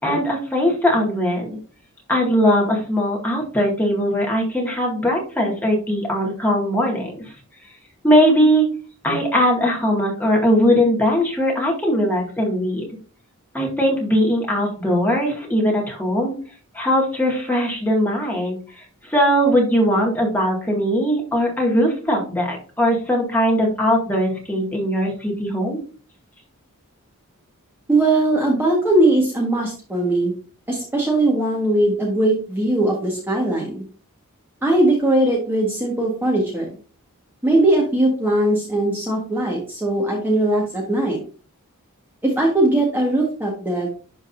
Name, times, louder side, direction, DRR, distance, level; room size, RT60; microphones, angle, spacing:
voice 1, 0.0-1.6 2.1-7.2 8.0-8.6 9.0-12.9 13.5-16.3 16.7-18.6 19.1-25.8, equal, 10° left, -1 dB, 2.1 m, -20 dB
voice 2, 27.9-30.3 30.7-33.8 34.6-36.7 37.4-41.2 42.2-43.9, right 1 dB, 10° right, -3 dB, 1.6 m, -19 dB
11.5 x 4.0 x 2.6 m, 0.37 s
head